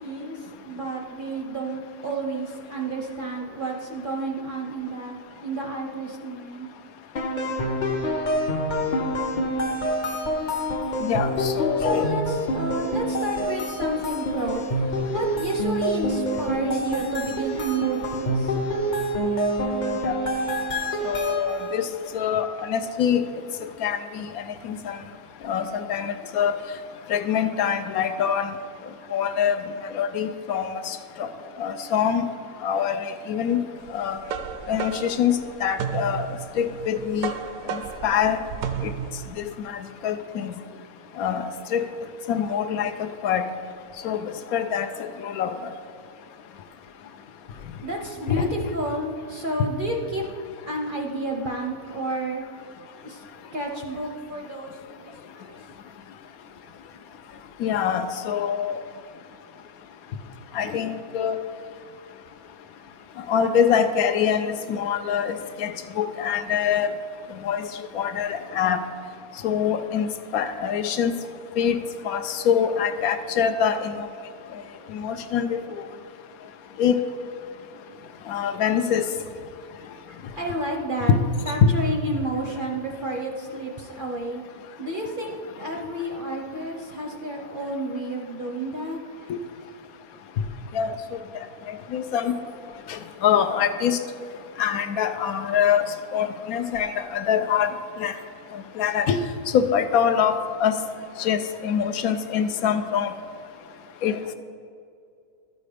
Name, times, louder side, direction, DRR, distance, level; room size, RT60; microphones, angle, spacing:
voice 1, 0.0-6.7 11.8-18.6 19.5-19.7 20.8-20.9 47.8-50.2 50.7-52.4 53.0-53.2 53.5-54.7 55.0-55.6 80.1-81.1 81.5-84.4 84.8-89.3, right 1 dB, 45° right, 1 dB, 0.7 m, -31 dB
sound 1, 7.1-21.8, equal, 40° left, 0.7 m, -27 dB
voice 2, 11.0-12.1 20.0-20.2 21.0-21.9 22.1-23.2 23.8-25.0 25.4-26.6 27.1-28.5 29.1-29.6 29.9-31.3 31.6-32.2 32.6-33.6 33.9-34.2 34.7-36.3 36.6-37.3 37.7-37.8 38.0-38.4 39.4-39.5 40.0-40.5 41.2-41.9 42.3-43.4 44.0-44.2 44.5-45.7 48.3-48.4 57.6-58.8 60.5-61.4 63.3-66.9 67.4-67.6 67.9-68.8 69.4-70.1 70.3-71.1 71.6-71.8 72.0-74.1 74.9-75.6 76.8-77.0 78.3-79.0 81.1-81.2 81.6-81.7 89.3-89.4 90.7-90.9 91.9-92.3 92.9-94.0 94.6-95.9 96.1-97.7 98.0-98.1 98.8-99.2 99.5-100.7 101.2-103.1 104.0-104.2, left 8 dB, 75° left, 8 dB, 1.0 m, -24 dB
sound 2, 33.9-39.3, right 8 dB, 75° right, 1.0 m, -33 dB
12.5 x 5.1 x 5.0 m, 2.5 s
omnidirectional pair, 1.6 m